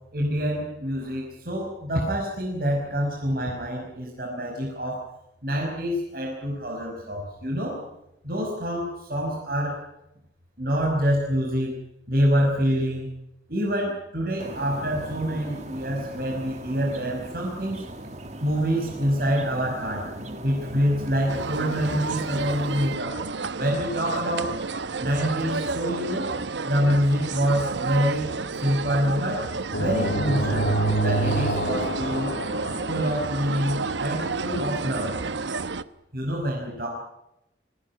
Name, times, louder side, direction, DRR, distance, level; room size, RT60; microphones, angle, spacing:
voice 1, 0.1-5.0 5.4-7.8 8.2-9.8 10.6-11.7 12.1-13.1 13.5-17.8 18.4-20.1 20.4-23.2 23.6-24.6 25.0-26.3 26.6-29.5 29.8-32.4 32.9-35.1 36.1-36.9, equal, 55° right, -1 dB, 5.4 m, -26 dB
sound 1, 14.4-23.0, right 1 dB, 40° right, 2.2 m, -39 dB
sound 2, 21.3-35.8, right 4 dB, 90° right, 0.9 m, -31 dB
sound 3, 29.7-33.5, right 2 dB, 80° left, 2.7 m, -26 dB
24.5 x 16.5 x 9.7 m, 0.84 s
head